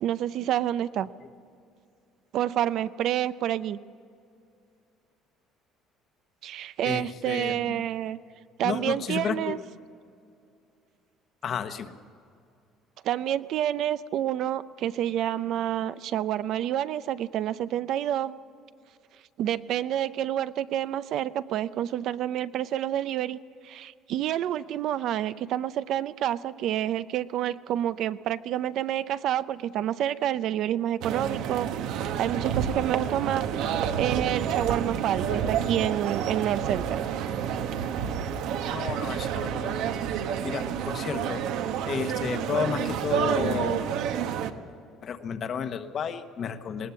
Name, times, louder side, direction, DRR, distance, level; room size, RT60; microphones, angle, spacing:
voice 1, 0.0-1.1 2.3-3.8 6.4-8.2 8.6-9.6 13.0-18.3 19.4-23.4 23.6-33.5 34.0-37.0, right 11 dB, 55° right, 14 dB, 0.5 m, -28 dB
voice 2, 6.8-7.8 8.6-9.6 11.4-11.9 38.7-39.7 40.4-41.4 41.9-43.8 45.0-46.9, left 7 dB, 40° left, 8 dB, 1.1 m, -32 dB
sound 1, 31.0-44.5, right 8 dB, 70° right, 1.1 m, -29 dB
19.5 x 19.0 x 7.1 m, 2.4 s
cardioid pair, 150°, 0 cm